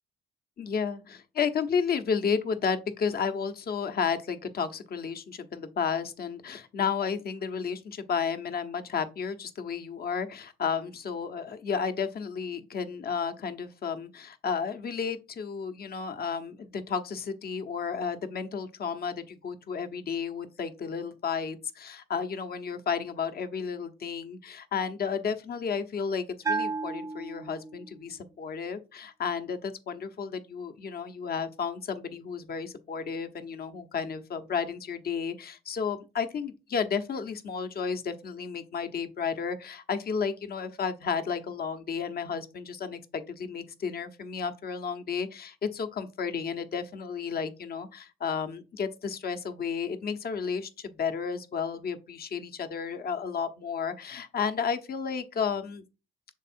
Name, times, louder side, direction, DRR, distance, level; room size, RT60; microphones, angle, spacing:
voice 1, 0.6-55.8, left 6 dB, 50° left, 0.9 m, -32 dB
Bell, 26.4-28.1, right 4 dB, 15° right, 0.4 m, -33 dB
6.6 x 3.7 x 4.3 m
cardioid pair, 90°, 20 cm